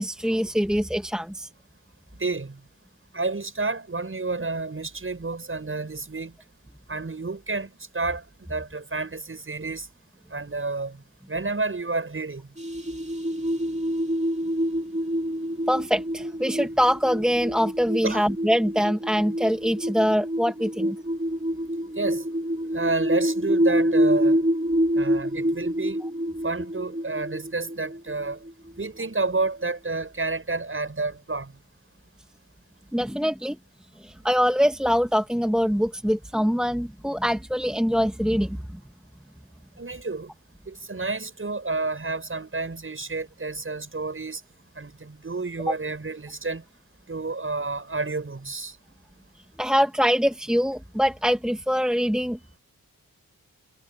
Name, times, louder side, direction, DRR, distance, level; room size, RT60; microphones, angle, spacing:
voice 1, 0.0-1.5 15.7-21.0 26.0-26.1 32.9-33.6 34.0-38.6 45.7-45.8 49.6-52.6, equal, ahead, 1.6 m, -24 dB
voice 2, 2.2-2.6 3.1-6.3 6.9-8.2 8.5-9.9 10.3-11.0 11.3-12.5 18.0-18.2 22.0-22.2 22.7-24.4 24.9-26.0 26.4-28.4 28.8-31.5 39.8-40.3 40.7-44.4 44.8-46.6 47.1-48.7, right 3 dB, 35° right, 7.6 m, -30 dB
sound 1, 12.6-28.9, equal, 20° right, 3.1 m, -27 dB
wide cardioid pair, 100°, 35 cm